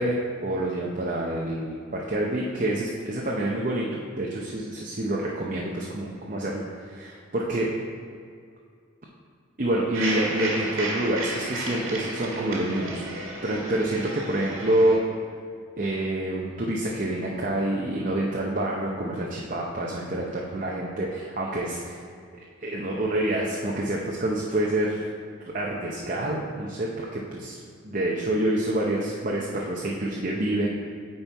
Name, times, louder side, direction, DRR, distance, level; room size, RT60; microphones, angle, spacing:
voice 1, 0.0-3.9 4.2-7.7 9.6-13.0 13.4-15.0 15.8-22.0 22.6-25.0 25.5-27.6 27.8-30.7, right 1 dB, 40° right, -3 dB, 0.6 m, -27 dB
sound 1, 9.9-15.0, right 2 dB, 85° right, 1.6 m, -33 dB
8.9 x 4.4 x 4.5 m, 2.2 s
head